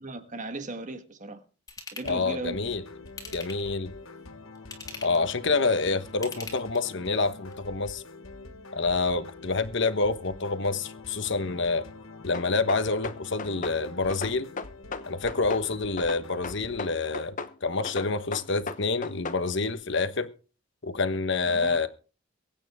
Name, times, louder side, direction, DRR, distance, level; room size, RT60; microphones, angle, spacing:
voice 1, 0.0-1.4 1.9-2.7 21.5-21.9, right 2 dB, 35° right, 1.6 m, -37 dB
Ratchet pawl / Tools, 1.7-2.2 3.1-3.8 4.5-5.3 6.1-7.0 7.5-7.6, left 3 dB, 15° left, 3.3 m, -41 dB
sound 1, 2.0-16.9, left 2 dB, 80° left, 1.3 m, -46 dB
voice 2, 2.0-2.8 3.3-3.9 5.0-8.0 8.7-11.9 12.2-14.5 15.1-17.4 17.6-20.3 20.8-21.9, left 3 dB, 60° left, 1.2 m, -27 dB
sound 2, 12.3-13.8 14.1-15.7 16.0-17.5 17.8-19.4, left 3 dB, 40° left, 0.9 m, -35 dB
23.5 x 8.9 x 3.6 m
head